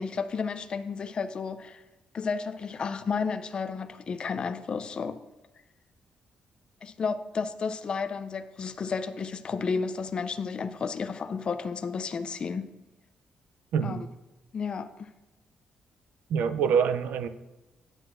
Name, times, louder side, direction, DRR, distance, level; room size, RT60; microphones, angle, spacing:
voice 1, 0.0-1.8 2.1-5.2 6.8-12.7 13.8-14.1 14.5-15.1, left 5 dB, 35° left, 9 dB, 0.4 m, -32 dB
voice 2, 13.7-14.0 16.3-17.3, right 7 dB, 80° right, 11 dB, 0.4 m, -25 dB
9.6 x 7.5 x 2.5 m, 1.0 s
cardioid pair, 145°, 3 cm